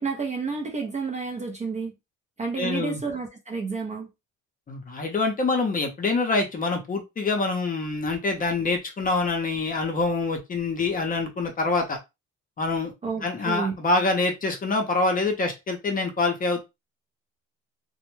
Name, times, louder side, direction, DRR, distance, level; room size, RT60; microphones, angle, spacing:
voice 1, 0.0-1.9 2.4-4.1 13.0-13.8, right 4 dB, 25° right, 0.4 m, -30 dB
voice 2, 2.6-3.0 4.7-12.0 12.6-12.9 13.2-16.6, left 3 dB, 25° left, 0.6 m, -25 dB
2.1 x 2.1 x 3.0 m
cardioid pair, 135°, 32 cm